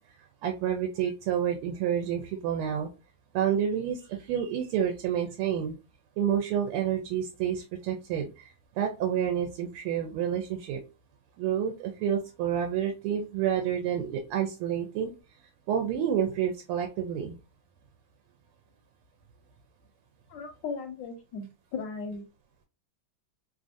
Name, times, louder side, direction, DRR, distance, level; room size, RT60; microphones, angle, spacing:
voice 1, 0.4-2.9 3.3-5.7 6.2-8.5 8.8-10.8 11.4-15.1 15.7-17.4, right 9 dB, 85° right, 3 dB, 1.5 m, -29 dB
voice 2, 20.3-21.5 21.7-22.2, left 4 dB, 75° left, 5 dB, 1.0 m, -36 dB
3.4 x 2.4 x 2.5 m, 0.29 s
omnidirectional pair, 2.3 m